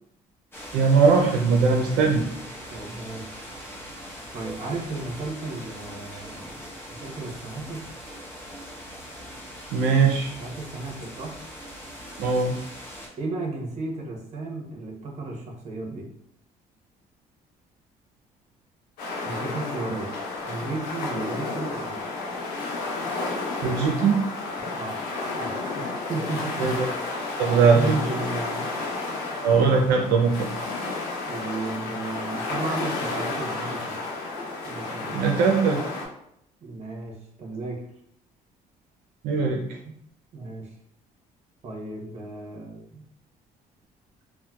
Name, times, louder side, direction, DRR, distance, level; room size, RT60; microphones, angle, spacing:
sound 1, 0.5-13.1, equal, 15° left, 0.8 m, -41 dB
voice 1, 0.7-2.2 9.7-10.3 12.2-12.5 23.6-24.2 26.6-26.9 27.4-27.8 29.4-30.5 35.1-35.8 39.2-39.6, right 5 dB, 85° right, 0 dB, 0.4 m, -20 dB
voice 2, 2.7-3.3 4.3-7.8 10.3-11.4 13.2-16.1 19.2-20.1 20.4-22.0 24.6-25.0 25.3-26.5 27.5-28.7 31.3-33.9 34.6-35.4 36.6-37.8 39.8-39.9 40.3-40.7 41.6-43.0, right 3 dB, 50° right, 0 dB, 0.9 m, -34 dB
sound 2, 19.0-36.1, left 3 dB, 85° left, 0.7 m, -32 dB
4.3 x 2.1 x 2.2 m, 0.74 s
cardioid pair, 105°, 15 cm